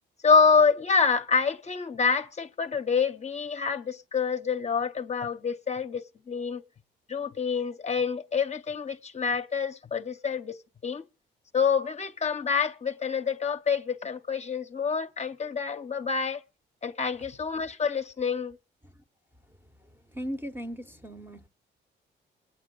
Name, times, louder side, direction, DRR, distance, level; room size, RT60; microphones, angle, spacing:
voice 1, 0.2-6.6 7.1-11.0 11.5-16.4 16.8-18.6, left 5 dB, 35° left, 0.7 m, -27 dB
voice 2, 20.1-21.5, equal, 10° right, 0.8 m, -37 dB
24.0 x 9.5 x 3.8 m
cardioid pair, 90°, 20 cm